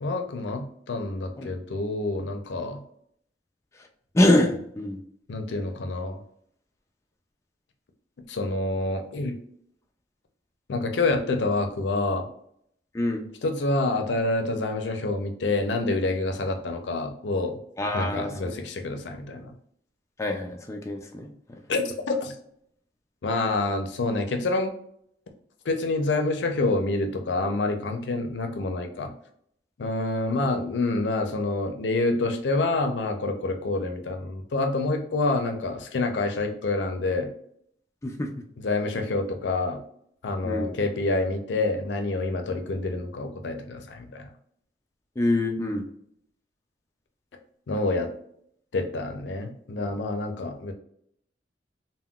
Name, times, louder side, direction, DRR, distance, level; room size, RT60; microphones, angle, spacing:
voice 1, 0.0-2.8 5.3-6.2 8.3-9.3 10.7-12.3 13.4-17.6 17.9-19.5 21.7-22.3 23.2-24.7 25.6-29.1 29.8-37.3 38.6-39.8 40.2-44.3 47.7-48.1 48.7-50.7, left 2 dB, 85° left, 5 dB, 0.5 m, -27 dB
voice 2, 4.1-5.0 12.9-13.3 17.8-18.5 20.2-21.3 38.0-38.3 40.4-40.7 45.2-45.8, left 1 dB, 15° left, 2 dB, 0.3 m, -25 dB
3.6 x 2.1 x 2.3 m, 0.69 s
head